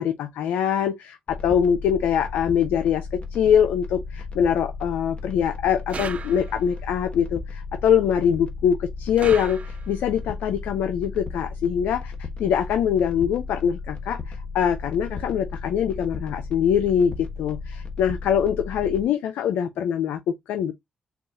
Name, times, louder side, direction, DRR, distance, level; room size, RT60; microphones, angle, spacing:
voice 1, 0.0-12.1 12.4-20.7, left 8 dB, 85° left, 0.4 m, -23 dB
sound 1, 1.3-19.0, left 4 dB, 45° left, 1.1 m, -35 dB
sound 2, 5.9-6.8 9.2-10.1, right 5 dB, 50° right, 0.6 m, -36 dB
6.8 x 2.4 x 2.4 m
supercardioid pair, 60°, 3 cm